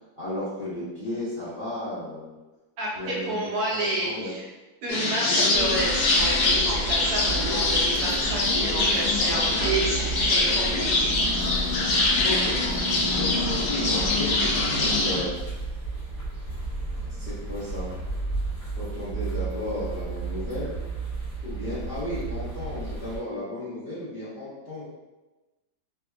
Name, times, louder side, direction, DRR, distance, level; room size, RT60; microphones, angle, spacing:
voice 1, 0.2-2.3 2.9-4.3 9.0-9.7 10.1-10.5 12.2-12.6 13.2-15.4 17.1-17.9 18.8-20.8 21.4-24.8, left 1 dB, 45° left, -12 dB, 0.8 m, -34 dB
voice 2, 2.8-4.4 4.8-11.1, right 1 dB, 70° right, -5 dB, 1.0 m, -30 dB
sound 1, 4.9-15.2, left 2 dB, 75° left, 1.2 m, -24 dB
sound 2, 5.5-23.2, right 3 dB, 20° left, 1.2 m, -33 dB
3.2 x 2.5 x 2.2 m, 1.1 s
omnidirectional pair, 2.0 m